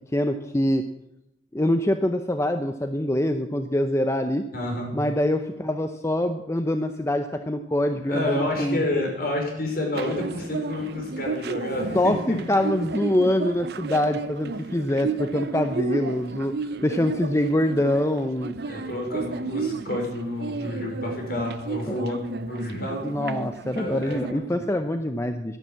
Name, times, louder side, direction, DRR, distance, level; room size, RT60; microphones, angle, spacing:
voice 1, 0.1-0.8 1.5-4.4 4.9-8.8 11.9-16.5 16.8-18.5 21.9-22.0 23.0-25.6, left 1 dB, 15° left, 7 dB, 0.7 m, -24 dB
voice 2, 4.5-4.9 8.1-12.4 18.6-23.0 23.7-24.8, left 1 dB, 55° left, 1 dB, 4.8 m, -29 dB
sound 1, 9.9-24.3, right 4 dB, 60° right, 0.6 m, -33 dB
12.0 x 11.0 x 7.4 m, 0.85 s
head